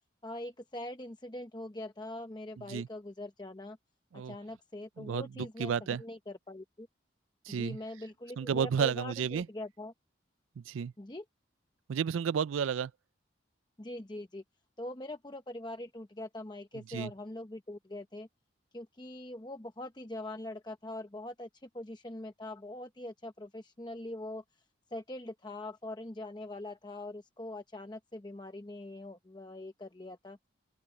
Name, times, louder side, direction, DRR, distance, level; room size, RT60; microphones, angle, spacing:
voice 1, 0.2-3.8 4.1-5.7 6.0-6.9 7.5-9.9 11.0-11.2 13.8-14.4 14.8-18.3 18.7-24.4 24.9-30.4, left 1 dB, 20° left, 0.8 m, -43 dB
voice 2, 5.0-6.0 7.5-7.8 8.4-9.5 10.6-10.9 11.9-12.9 16.7-17.1, right 7 dB, 85° right, 0.4 m, -32 dB
open air
head